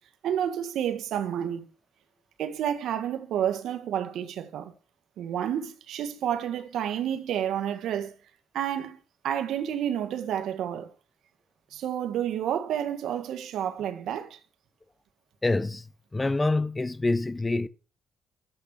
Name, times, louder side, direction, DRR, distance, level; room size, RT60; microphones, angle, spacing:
voice 1, 0.2-1.7 2.4-4.7 5.2-8.1 8.5-9.0 9.2-10.9 11.7-14.4, right 10 dB, 75° right, 1.8 m, -30 dB
voice 2, 15.4-15.8 16.1-17.7, left 2 dB, 20° left, 1.0 m, -26 dB
13.0 x 8.3 x 6.6 m
cardioid pair, 90°, 0 cm